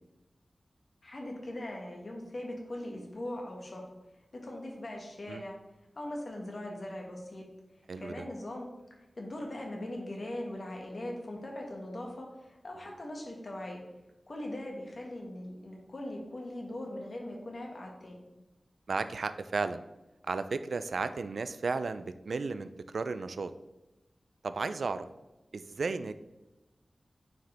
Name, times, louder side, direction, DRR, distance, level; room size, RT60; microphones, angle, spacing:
voice 1, 1.0-3.9 4.4-5.6 5.9-7.5 8.0-8.7 9.2-13.8 14.3-18.2, left 1 dB, 55° left, 0 dB, 1.7 m, -40 dB
voice 2, 7.9-8.2 18.9-19.8 20.2-23.5 24.4-25.1 25.5-26.1, right 4 dB, 80° right, 11 dB, 0.4 m, -34 dB
9.1 x 4.8 x 3.4 m, 1.0 s
wide cardioid pair, 70°, 0 cm